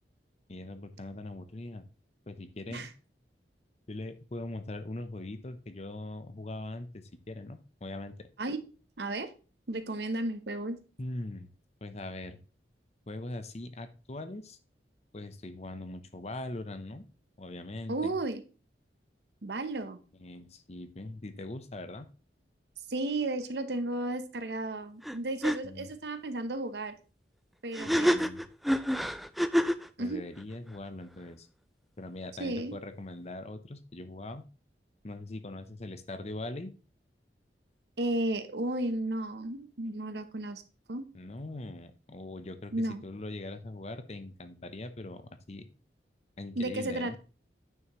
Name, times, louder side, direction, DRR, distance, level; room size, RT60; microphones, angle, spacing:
voice 1, 0.5-1.9 2.3-2.9 3.9-8.3 11.0-11.5 11.8-12.4 13.1-14.6 15.1-17.0 17.4-18.1 20.2-22.1 25.6-25.9 27.8-28.4 30.0-31.5 32.0-34.4 35.0-36.7 41.1-45.7 46.4-47.2, left 2 dB, 40° left, 10 dB, 0.8 m, -41 dB
voice 2, 9.0-9.3 9.7-10.8 17.9-18.4 19.4-20.0 22.9-27.0 27.6-28.2 30.0-30.2 32.4-32.7 38.0-40.6 40.9-41.0 42.7-43.0 46.6-47.2, right 2 dB, 65° right, 10 dB, 0.9 m, -33 dB
sound 1, 25.0-25.2 25.4-25.6 27.7-29.9, equal, ahead, 0.3 m, -27 dB
9.2 x 6.3 x 3.1 m, 0.35 s
head